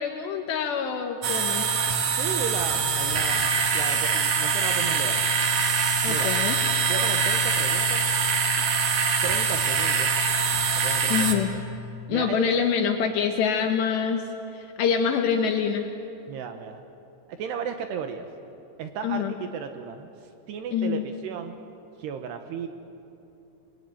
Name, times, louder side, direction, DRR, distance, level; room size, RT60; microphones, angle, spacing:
voice 1, 0.0-1.6 6.0-6.6 11.1-11.5 12.1-14.2 14.5-15.9 19.0-19.3 20.7-21.1, left 7 dB, 70° left, 5 dB, 3.0 m, -25 dB
sound 1, 1.2-11.4, right 5 dB, 55° right, 2.3 m, -24 dB
voice 2, 2.2-5.2 6.1-6.3 6.9-8.1 9.2-10.2 10.8-11.6 12.1-12.7 16.3-16.8 17.3-18.3 18.8-20.1 20.5-21.6 22.0-22.7, right 7 dB, 75° right, 7 dB, 2.7 m, -34 dB
27.5 x 22.5 x 9.3 m, 2.8 s
omnidirectional pair, 5.8 m